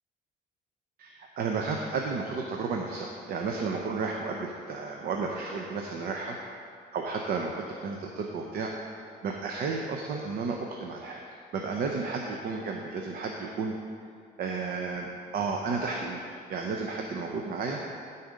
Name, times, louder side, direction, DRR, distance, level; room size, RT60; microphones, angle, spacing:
voice 1, 1.0-6.4 6.9-11.2 11.5-13.7 14.4-15.1 15.3-17.8, right 4 dB, 60° right, 1 dB, 0.8 m, -32 dB
13.0 x 4.3 x 5.1 m, 2.3 s
cardioid pair, 110°, 17 cm